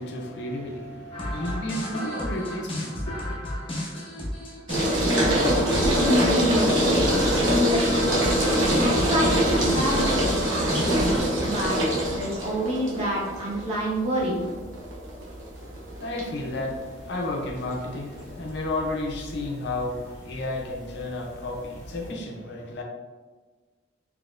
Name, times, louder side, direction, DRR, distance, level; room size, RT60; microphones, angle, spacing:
voice 1, 0.0-3.4 15.5-22.8, left 2 dB, 60° left, 0 dB, 0.6 m, -32 dB
sound 1, 1.1-11.2, left 1 dB, 25° left, 0.8 m, -33 dB
sound 2, 4.7-22.1, equal, 80° right, 1.0 m, -25 dB
voice 2, 5.4-8.0 8.8-11.1 11.4-14.4, equal, 30° right, -5 dB, 0.9 m, -27 dB
4.1 x 2.9 x 2.4 m, 1.3 s
head